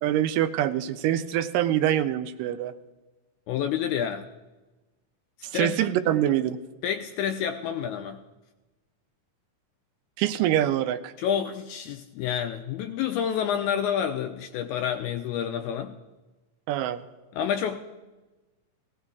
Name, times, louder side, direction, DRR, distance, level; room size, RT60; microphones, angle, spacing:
voice 1, 0.0-2.7 5.4-6.6 10.2-11.1 16.7-17.0, right 12 dB, 85° right, 11 dB, 2.2 m, -25 dB
voice 2, 3.5-4.3 5.5-5.9 6.8-8.2 11.2-16.0 17.3-17.8, left 8 dB, 80° left, 5 dB, 1.8 m, -29 dB
18.0 x 16.5 x 2.4 m, 1.2 s
omnidirectional pair, 3.9 m